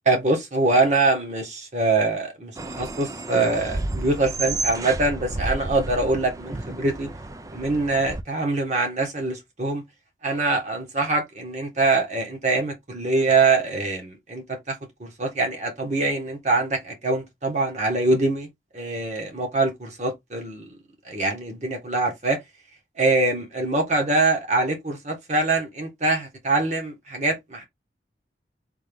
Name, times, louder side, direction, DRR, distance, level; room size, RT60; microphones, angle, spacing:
voice 1, 0.0-7.1 7.5-9.8 10.2-14.7 15.0-18.5 18.7-20.7 21.0-22.4 23.0-27.6, right 3 dB, 40° right, 1.2 m, -24 dB
sound 1, 2.6-8.2, right 2 dB, 20° right, 0.4 m, -32 dB
3.7 x 2.8 x 3.4 m
head